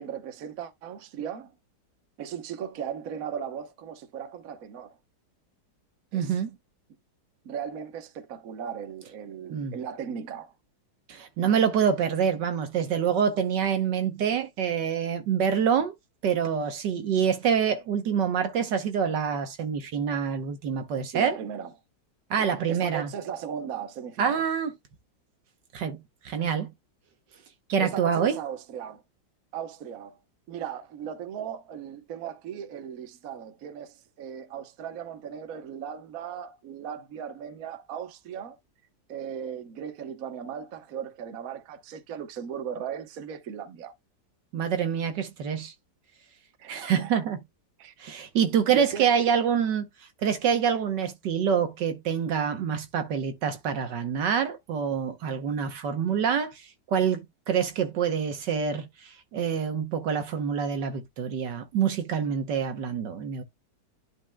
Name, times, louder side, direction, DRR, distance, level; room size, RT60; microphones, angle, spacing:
voice 1, 0.0-1.5 2.2-5.0 6.1-6.4 7.4-10.5 21.1-21.7 22.4-24.4 27.8-29.0 29.5-30.2 30.5-38.6 39.1-43.9 46.6-47.2 47.8-47.9 48.7-49.2, right 8 dB, 55° right, 1.3 m, -37 dB
voice 2, 6.1-6.5 9.5-9.7 11.1-15.9 16.2-21.4 22.3-23.1 24.2-24.7 25.7-26.0 26.2-26.7 27.7-28.4 44.5-45.7 46.7-47.4 48.0-49.9 50.2-57.2 57.5-63.4, right 7 dB, 70° right, 1.5 m, -26 dB
11.0 x 4.8 x 2.2 m
omnidirectional pair, 2.0 m